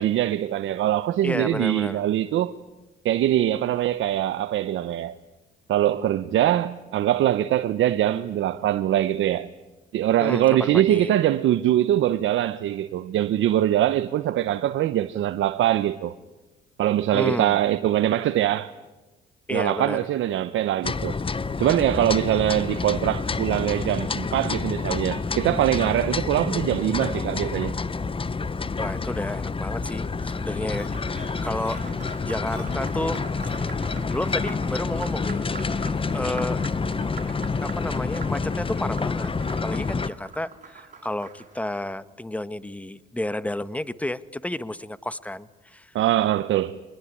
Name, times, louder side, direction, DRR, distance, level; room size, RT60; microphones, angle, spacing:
voice 1, 0.0-2.5 3.0-5.2 5.7-9.5 9.9-16.1 16.8-18.7 19.5-21.2 21.6-27.7 36.3-36.4 45.9-46.8, right 12 dB, 70° right, 0.9 m, -23 dB
voice 2, 1.2-2.0 10.2-11.1 17.1-17.6 19.5-20.0 28.8-31.8 32.2-33.3 34.1-35.4 36.1-36.6 37.6-39.3 39.6-45.9, left 1 dB, 5° left, 1.2 m, -31 dB
sound 1, 20.8-40.1, left 4 dB, 25° left, 1.0 m, -28 dB
Applause, 30.1-41.8, right 5 dB, 40° right, 6.0 m, -44 dB
sound 2, 30.8-30.9 31.2-31.3 31.6-33.6 33.9-34.0 34.3-34.5 34.8-34.9 35.2-35.4 35.7-35.8 36.1-36.2 36.6-36.7 37.0-37.1, left 7 dB, 80° left, 5.3 m, -42 dB
24.0 x 20.5 x 10.0 m
supercardioid pair, 70°, 21 cm